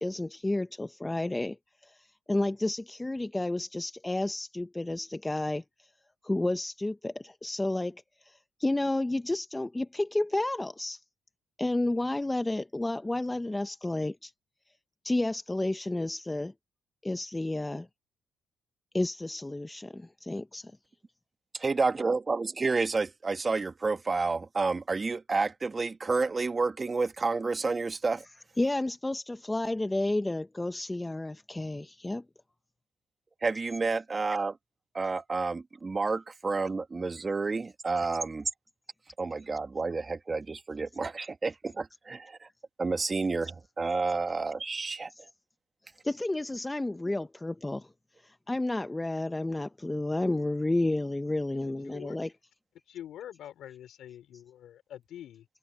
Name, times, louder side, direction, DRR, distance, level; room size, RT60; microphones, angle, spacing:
voice 1, 0.0-1.6 1.8-5.6 6.2-11.0 11.6-14.3 15.0-16.5 17.0-17.9 18.9-20.7 28.3-32.2 33.5-33.6 45.1-45.2 46.0-47.9 48.2-52.3, left 2 dB, 15° left, 0.8 m, -31 dB
voice 2, 21.5-28.2 33.4-34.6 34.9-38.5 39.2-42.5 42.8-45.1, right 4 dB, 30° right, 1.6 m, -30 dB
voice 3, 51.5-52.2 52.9-55.5, left 11 dB, 75° left, 5.1 m, -46 dB
cardioid pair, 90°, 0 cm